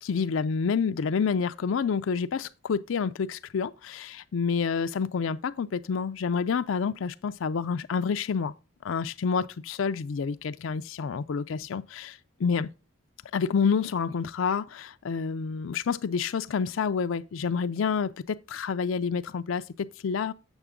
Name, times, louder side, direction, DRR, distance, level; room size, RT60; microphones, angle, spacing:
voice 1, 0.0-8.5 8.8-12.7 13.3-20.3, left 6 dB, 65° left, 0.4 m, -28 dB
8.1 x 6.6 x 3.6 m
head